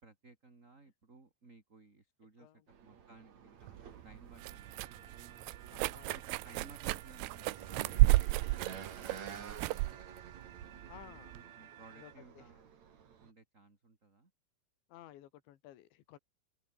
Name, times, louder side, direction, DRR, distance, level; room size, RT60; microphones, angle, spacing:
voice 1, 0.0-5.2 6.1-10.0 10.6-12.7 13.2-14.3, right 3 dB, 20° right, 2.7 m, -59 dB
sound 1, 2.7-13.3, right 7 dB, 45° right, 3.3 m, -51 dB
sound 2, 3.6-11.4, right 20 dB, 85° right, 2.3 m, -33 dB
sound 3, 4.4-12.1, right 11 dB, 60° right, 3.2 m, -57 dB
voice 2, 5.7-6.2 10.9-11.4 12.0-12.5 14.9-16.2, left 13 dB, 80° left, 4.2 m, -55 dB
open air
omnidirectional pair, 5.2 m